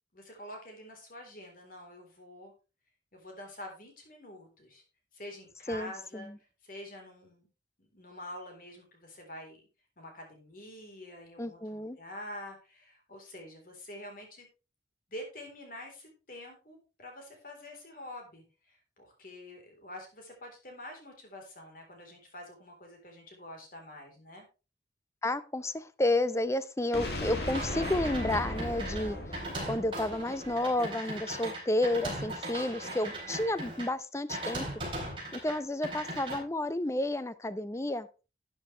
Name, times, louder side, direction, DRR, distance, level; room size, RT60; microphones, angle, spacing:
voice 1, 0.1-2.5 3.1-4.8 5.1-6.3 6.6-7.5 7.8-9.6 10.0-14.5 15.1-24.5, left 1 dB, 50° left, 3.8 m, -47 dB
voice 2, 5.7-6.4 11.4-12.0 25.2-29.2 29.7-34.6 35.3-38.1, left 1 dB, 15° left, 0.6 m, -31 dB
sound 1, 26.9-30.9, left 1 dB, 65° left, 2.7 m, -37 dB
sound 2, 27.5-33.9 34.3-35.5 35.8-36.4, right 1 dB, 30° right, 4.3 m, -39 dB
12.5 x 8.7 x 3.3 m
head